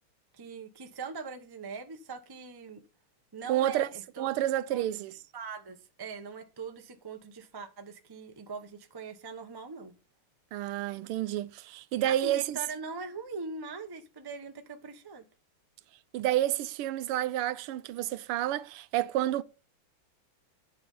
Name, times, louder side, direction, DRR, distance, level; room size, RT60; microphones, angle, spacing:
voice 1, 0.3-2.8 3.3-4.3 4.7-4.8 5.3-9.9 12.0-15.2, right 4 dB, 35° right, 0.3 m, -41 dB
voice 2, 3.5-3.9 4.2-5.2 10.5-12.6 16.1-19.4, right 13 dB, 85° right, 1.6 m, -29 dB
9.6 x 6.1 x 5.5 m
omnidirectional pair, 2.4 m